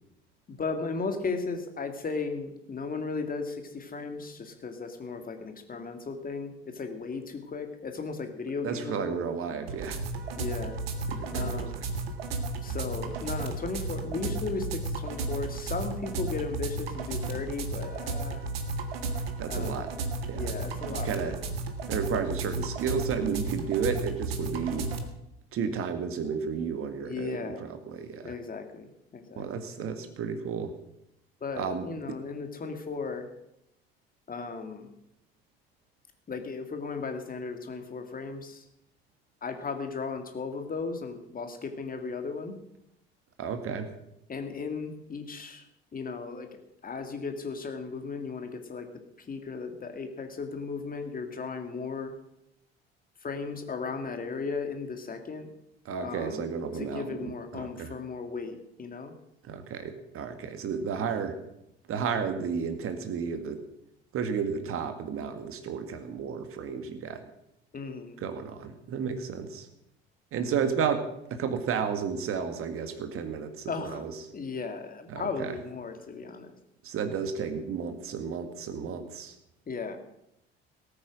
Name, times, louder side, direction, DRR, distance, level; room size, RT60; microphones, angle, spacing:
voice 1, 0.5-9.2 10.4-10.8 11.3-11.8 12.6-18.4 19.5-19.9 20.3-21.3 27.0-27.6 28.2-28.9 29.1-29.4 29.9-30.0 31.4-33.3 34.3-34.9 36.3-38.6 39.4-42.5 44.3-45.6 45.9-46.5 46.8-48.9 49.3-52.1 53.2-55.5 56.0-56.5 56.7-59.1 67.7-68.2 73.7-74.0 74.3-76.5 79.7-80.0, left 4 dB, 30° left, 6 dB, 2.3 m, -36 dB
voice 2, 8.6-10.0 11.1-11.8 19.4-19.9 20.3-20.5 21.0-21.4 21.9-24.9 25.5-28.3 29.4-30.7 31.6-32.2 43.4-43.9 55.9-58.0 59.4-61.4 61.9-63.6 64.1-67.2 68.2-69.7 70.3-74.1 75.1-75.6 76.8-79.3, right 6 dB, 45° right, 8 dB, 1.9 m, -32 dB
sound 1, 9.7-25.0, right 3 dB, 70° right, 1.7 m, -33 dB
18.5 x 8.8 x 6.3 m, 0.82 s
figure-of-eight pair, 60°, 31 cm